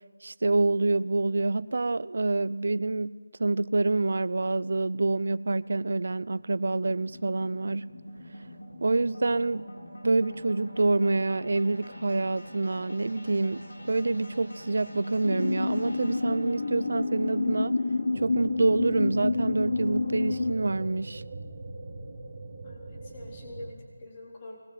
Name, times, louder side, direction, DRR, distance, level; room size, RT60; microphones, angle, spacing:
voice 1, 0.2-7.9 8.8-9.7 10.0-17.7 18.2-21.2, right 3 dB, 60° right, 19 dB, 0.7 m, -27 dB
sound 1, 4.4-20.8, equal, 80° left, 7.5 m, -46 dB
sound 2, 15.2-20.5, left 3 dB, 55° left, 1.1 m, -29 dB
sound 3, 18.1-23.7, right 2 dB, 30° right, 3.0 m, -41 dB
voice 2, 22.6-24.6, left 2 dB, 25° left, -2 dB, 4.1 m, -45 dB
25.0 x 21.0 x 8.0 m, 1.5 s
figure-of-eight pair, 175°, 0 cm